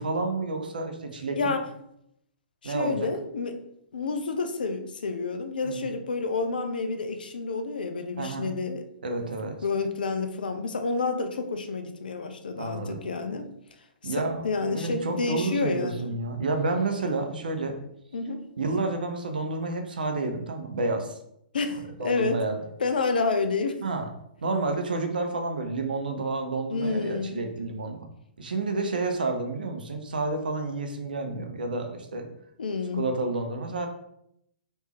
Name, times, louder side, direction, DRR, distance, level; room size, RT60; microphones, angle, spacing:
voice 1, 0.0-1.5 2.6-3.1 5.6-5.9 8.2-8.5 9.0-9.6 12.5-13.0 14.0-17.8 18.6-21.2 21.7-22.6 23.8-24.1 24.4-28.1 28.4-32.3 32.9-33.9, right 3 dB, 65° right, 4 dB, 0.7 m, -30 dB
voice 2, 1.4-1.7 2.6-3.6 3.9-8.8 9.6-13.5 14.0-16.1 18.1-18.5 21.5-22.4 22.8-23.8 26.7-27.4 32.6-33.0, left 4 dB, 65° left, 8 dB, 0.5 m, -29 dB
3.4 x 3.1 x 3.0 m, 0.75 s
figure-of-eight pair, 115°, 5 cm